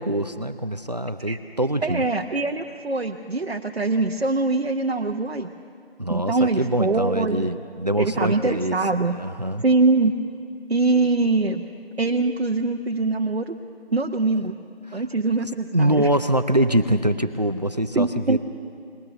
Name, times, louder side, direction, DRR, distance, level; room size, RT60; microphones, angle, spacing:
voice 1, 0.0-2.1 6.0-9.6 14.9-15.0 15.7-18.4, right 1 dB, 40° right, 10 dB, 0.6 m, -24 dB
voice 2, 1.8-5.5 6.1-7.5 8.0-9.2 9.6-10.1 10.7-11.6 12.0-13.6 13.9-14.6 14.9-16.1 17.9-18.4, right 3 dB, 75° right, 2 dB, 1.0 m, -23 dB
21.5 x 19.0 x 6.9 m, 2.4 s
figure-of-eight pair, 175°, 31 cm